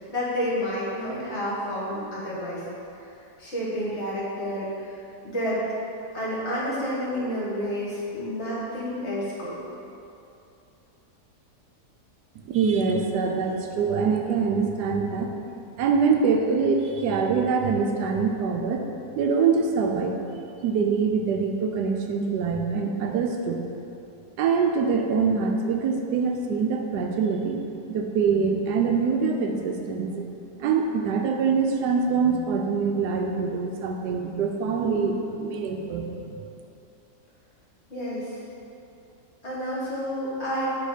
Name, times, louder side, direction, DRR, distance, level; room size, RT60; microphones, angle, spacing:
voice 1, 0.1-2.6 3.4-4.9 5.3-5.6 6.1-9.6 37.9-38.4 39.4-40.8, equal, 45° left, -8 dB, 1.7 m, -29 dB
voice 2, 12.4-18.8 19.2-20.2 20.6-23.6 24.4-30.3 30.6-36.5, right 5 dB, 80° right, 3 dB, 1.2 m, -24 dB
7.7 x 3.4 x 4.9 m, 2.7 s
omnidirectional pair, 1.8 m